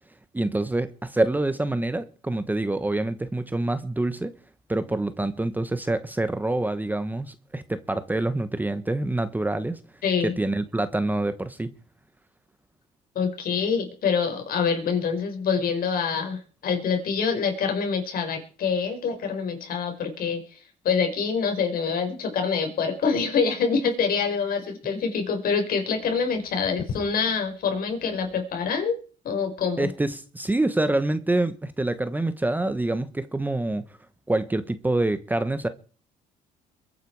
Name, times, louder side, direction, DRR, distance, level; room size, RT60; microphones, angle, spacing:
voice 1, 0.3-4.3 4.7-9.8 10.2-11.7 29.8-33.8 34.3-35.7, right 2 dB, 10° right, 1.1 m, -26 dB
voice 2, 10.0-10.3 13.2-20.4 20.8-28.9 29.2-29.9, left 5 dB, 60° left, 5.2 m, -25 dB
22.5 x 9.5 x 4.8 m
cardioid pair, 110°, 17 cm